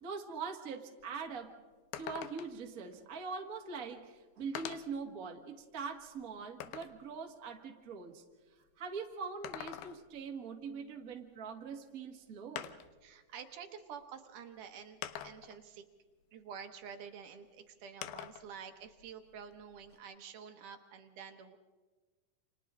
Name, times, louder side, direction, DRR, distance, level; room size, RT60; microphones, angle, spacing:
voice 1, 0.0-1.5 2.0-8.2 8.8-12.7, right 5 dB, 45° right, 2 dB, 1.1 m, -43 dB
sound 1, 1.0-1.1 1.4-1.5 1.9-2.7 3.7-3.8 4.6-5.0 5.6-7.0 9.2-10.2 11.7-11.8 12.6-13.0 14.0-14.1 15.0-15.6 18.0-18.5 18.9-20.0, left 10 dB, 85° left, 2.9 m, -45 dB
voice 2, 13.0-15.9 16.3-21.6, right 7 dB, 65° right, 5 dB, 2.3 m, -49 dB
29.5 x 28.0 x 3.8 m, 1.4 s
omnidirectional pair, 4.6 m